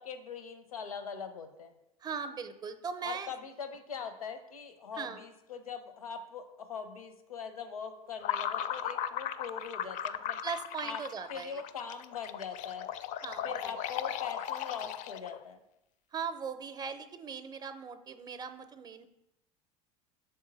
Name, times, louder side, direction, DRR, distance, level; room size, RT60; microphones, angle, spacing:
voice 1, 0.0-1.7 3.0-10.4 10.8-11.0 11.3-12.9 13.4-15.6, left 6 dB, 85° left, 8 dB, 0.7 m, -42 dB
voice 2, 2.0-3.3 5.0-5.2 10.4-11.6 13.2-13.7 16.1-19.1, right 6 dB, 20° right, 11 dB, 0.6 m, -39 dB
sound 1, 8.2-15.4, left 10 dB, 45° left, 0.4 m, -37 dB
6.8 x 3.7 x 4.0 m, 0.88 s
figure-of-eight pair, 70°, 18 cm